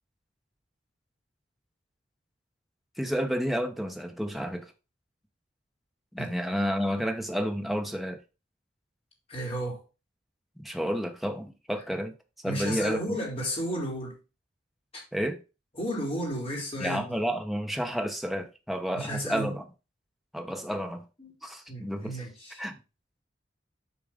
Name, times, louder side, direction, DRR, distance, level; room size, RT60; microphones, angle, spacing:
voice 1, 3.0-4.7 6.1-8.2 10.6-12.1 12.4-13.2 15.1-15.4 16.8-19.6 20.3-21.0 21.4-22.2 22.6-22.8, equal, ahead, 0.9 m, -31 dB
voice 2, 9.3-9.8 12.4-14.2 14.9-15.0 15.7-17.2 18.9-19.5 21.2-21.3 21.7-22.6, equal, 35° left, 3.9 m, -33 dB
8.6 x 4.8 x 3.6 m
head